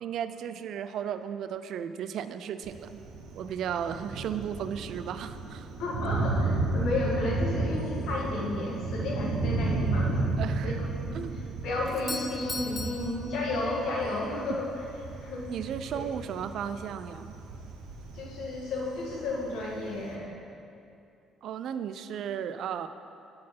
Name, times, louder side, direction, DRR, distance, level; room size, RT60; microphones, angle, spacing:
voice 1, 0.0-3.0 3.4-5.7 10.4-10.8 11.1-11.4 15.5-17.3 21.4-22.9, right 8 dB, 65° right, 11 dB, 0.3 m, -35 dB
Thunder, 2.6-20.2, right 3 dB, 85° right, 0.8 m, -33 dB
voice 2, 5.8-10.3 10.6-10.7 11.1-11.2 11.6-14.7 15.2-15.5 15.9-16.1 18.1-20.3, left 2 dB, 70° left, -3 dB, 1.5 m, -32 dB
Doorbell, 11.9-14.0, left 2 dB, 10° left, 0.4 m, -39 dB
7.3 x 4.3 x 5.8 m, 2.5 s
cardioid pair, 120°, 0 cm